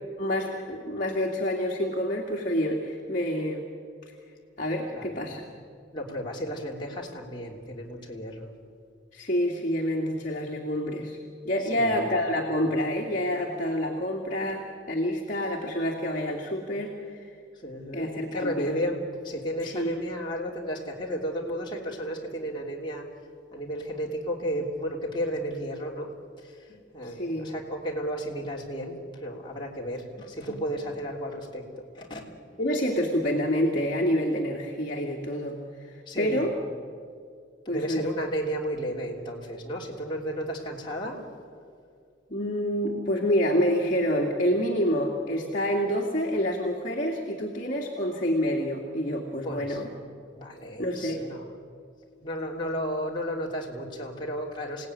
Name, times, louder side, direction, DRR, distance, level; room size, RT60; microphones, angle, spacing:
voice 1, 0.0-3.7 4.6-5.4 9.1-11.2 11.4-17.3 17.9-18.8 19.6-19.9 26.7-27.5 30.5-30.6 32.6-36.6 37.7-38.1 42.3-49.9 50.8-51.2, equal, 45° left, -1 dB, 2.5 m, -28 dB
voice 2, 4.9-5.3 5.9-8.5 11.6-12.1 17.6-19.0 19.2-23.0 23.5-26.1 26.4-31.7 31.9-32.2 36.1-36.5 37.6-41.2 49.4-49.8 50.3-51.6 52.2-54.9, equal, 25° left, -3 dB, 3.2 m, -33 dB
28.5 x 17.5 x 9.7 m, 2.2 s
head